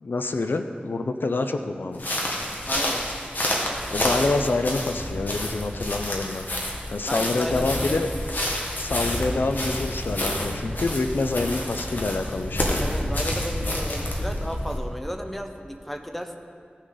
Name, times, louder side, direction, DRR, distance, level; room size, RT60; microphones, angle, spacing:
voice 1, 0.0-2.0 3.9-6.5 6.9-8.1 8.8-12.8, left 3 dB, 80° left, 7 dB, 0.5 m, -27 dB
sound 1, 1.9-14.8, left 1 dB, 60° left, 1.6 m, -28 dB
voice 2, 2.7-3.1 7.1-8.0 8.4-8.5 12.8-16.4, equal, 5° left, 5 dB, 0.8 m, -34 dB
16.0 x 6.3 x 3.9 m, 2.2 s
wide cardioid pair, 65°, 3 cm